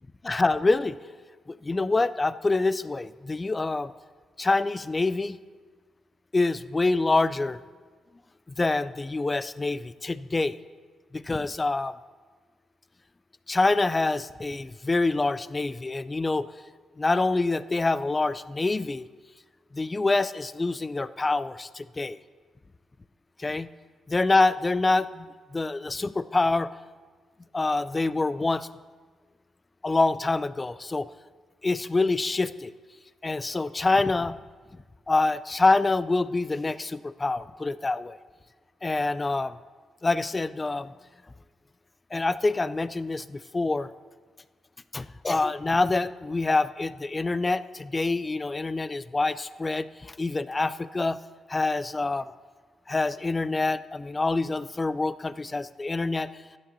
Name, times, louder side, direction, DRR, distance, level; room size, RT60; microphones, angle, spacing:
voice 1, 0.3-1.0 1.5-3.9 4.4-5.4 6.3-7.6 8.6-10.6 11.1-11.9 13.5-16.5 17.0-19.0 19.7-22.2 23.4-23.7 24.1-26.7 27.5-28.7 29.8-31.1 31.6-32.7 33.2-34.4 35.1-38.2 38.8-39.6 40.0-40.9 42.1-43.9 44.9-51.2 51.5-52.3 52.9-56.3, left 3 dB, 30° left, 16 dB, 0.4 m, -26 dB
16.0 x 11.0 x 2.8 m, 1.5 s
supercardioid pair, 50°, 0 cm